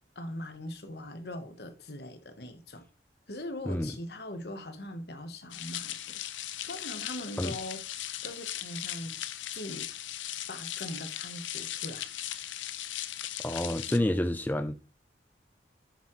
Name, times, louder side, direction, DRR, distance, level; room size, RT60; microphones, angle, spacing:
voice 1, 0.1-2.9 3.3-6.2 6.6-7.8 8.2-9.2 9.5-9.9 10.5-12.1, left 1 dB, 55° left, 1.1 m, -41 dB
sound 1, 5.5-14.0, left 12 dB, 85° left, 0.6 m, -38 dB
voice 2, 13.4-14.8, left 1 dB, 10° left, 0.3 m, -29 dB
7.3 x 7.2 x 3.1 m
head